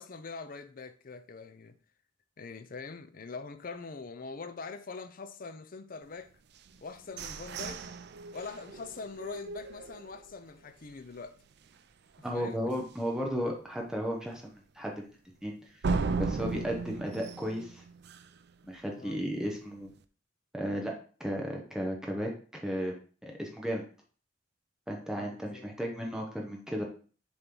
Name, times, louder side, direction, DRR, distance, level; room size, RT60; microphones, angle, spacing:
voice 1, 0.0-1.7 2.4-6.3 6.8-7.9 8.3-11.4 12.2-12.6 19.0-19.2 25.1-26.0, left 4 dB, 45° left, 0.5 m, -43 dB
sound 1, 6.5-10.4 10.9-11.0 11.4-11.8 12.1-12.2 12.7-12.8 15.8-18.5, right 4 dB, 60° right, 0.5 m, -36 dB
voice 2, 12.2-15.1 15.4-15.8 16.2-17.8 18.7-19.9 20.5-20.9 21.2-23.0 23.2-23.8 24.9-26.8, equal, 5° right, 0.8 m, -34 dB
7.0 x 3.1 x 5.3 m
head